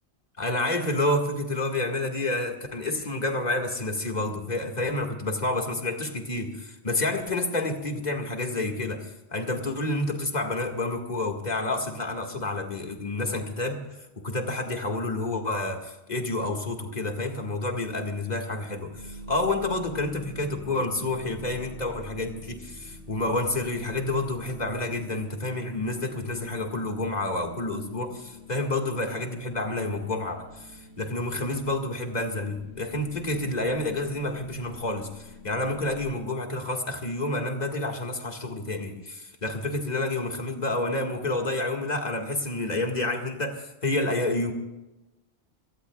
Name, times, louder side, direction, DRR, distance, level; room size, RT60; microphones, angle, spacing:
voice 1, 0.4-44.5, left 2 dB, 35° left, 3 dB, 2.0 m, -29 dB
sound 1, 18.9-36.1, left 1 dB, 85° right, 6.0 m, -47 dB
26.5 x 18.5 x 2.4 m, 1.0 s
omnidirectional pair, 1.2 m